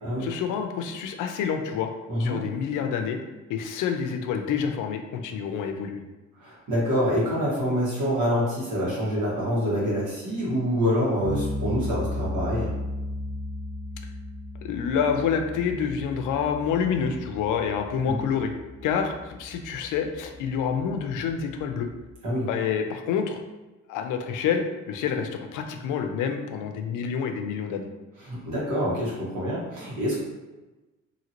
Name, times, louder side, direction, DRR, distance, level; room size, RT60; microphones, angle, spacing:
voice 1, 0.2-1.9 2.2-3.2 3.5-6.0 14.6-18.5 18.8-21.9 22.5-23.4 23.9-27.9, left 7 dB, 85° left, 5 dB, 0.5 m, -28 dB
voice 2, 2.1-2.4 6.4-12.7 18.1-18.2 22.2-22.5 28.2-30.2, equal, 80° right, -6 dB, 1.4 m, -26 dB
sound 1, 11.2-22.1, left 1 dB, 55° right, 0.8 m, -36 dB
2.8 x 2.7 x 2.8 m, 1.1 s
cardioid pair, 90°, 30 cm